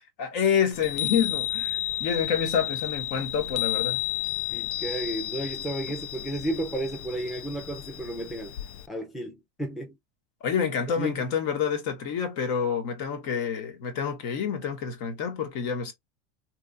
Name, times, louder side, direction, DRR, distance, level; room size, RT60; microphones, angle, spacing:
voice 1, 0.2-4.0 10.4-15.9, left 7 dB, 55° left, 1.2 m, -28 dB
Chime, 0.7-8.9, left 15 dB, 75° left, 0.5 m, -32 dB
voice 2, 4.5-8.5 8.9-9.9 11.0-11.2, right 1 dB, ahead, 0.6 m, -33 dB
3.0 x 3.0 x 2.5 m
supercardioid pair, 120°, 34 cm